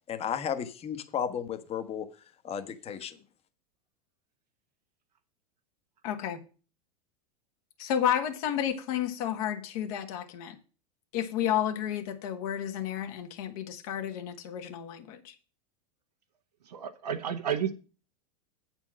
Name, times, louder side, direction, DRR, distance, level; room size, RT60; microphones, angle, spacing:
voice 1, 0.1-2.1 2.4-3.2, left 8 dB, 30° left, 1.1 m, -33 dB
voice 2, 6.0-6.4 7.8-10.6 11.1-15.3, left 10 dB, 65° left, 1.6 m, -31 dB
voice 3, 16.7-17.7, right 8 dB, 90° right, 1.2 m, -31 dB
8.5 x 4.5 x 7.3 m
hypercardioid pair, 105°, 20 cm